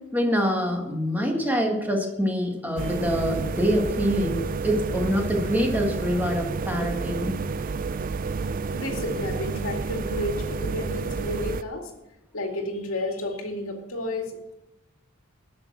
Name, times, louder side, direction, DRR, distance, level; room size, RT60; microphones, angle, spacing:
voice 1, 0.1-7.4, equal, 10° right, 1 dB, 1.7 m, -25 dB
sound 1, 2.8-11.6, right 4 dB, 40° right, 0.4 m, -30 dB
voice 2, 7.9-8.4 8.7-11.9 12.3-14.4, left 2 dB, 85° left, 2 dB, 2.3 m, -32 dB
12.0 x 6.4 x 7.3 m, 0.94 s
head